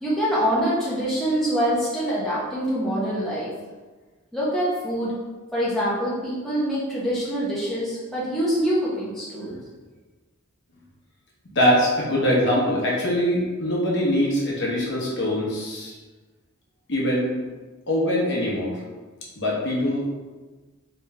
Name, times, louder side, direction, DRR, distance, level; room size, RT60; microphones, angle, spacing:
voice 1, 0.0-3.5 4.3-5.1 5.5-9.6, equal, ahead, -9 dB, 0.7 m, -25 dB
voice 2, 11.5-15.9 16.9-17.3 17.9-18.8 19.4-20.1, equal, 55° left, -4 dB, 1.0 m, -23 dB
3.4 x 3.1 x 3.2 m, 1.3 s
head